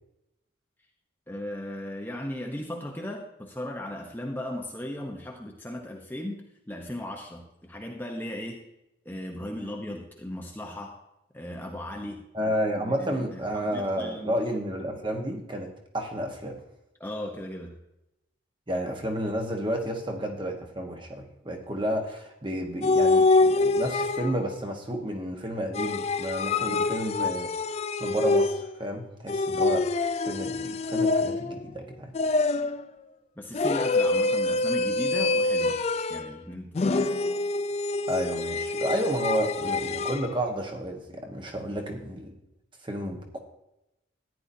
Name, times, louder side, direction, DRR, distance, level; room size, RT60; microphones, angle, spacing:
voice 1, 1.3-8.6 9.0-11.0 11.3-12.2 12.8-14.3 17.0-17.8 26.6-26.9 33.4-35.8 36.1-37.1, left 1 dB, 10° left, 0 dB, 0.8 m, -37 dB
voice 2, 12.3-16.6 18.7-27.5 28.0-29.9 30.2-32.1 38.1-42.4 42.8-43.4, equal, 25° right, 3 dB, 1.2 m, -31 dB
sound 1, 22.8-24.5 25.7-28.8 29.3-31.6 32.1-32.9 33.5-36.3 36.7-40.3, left 3 dB, 30° left, 0.3 m, -25 dB
14.0 x 9.8 x 2.7 m, 0.89 s
head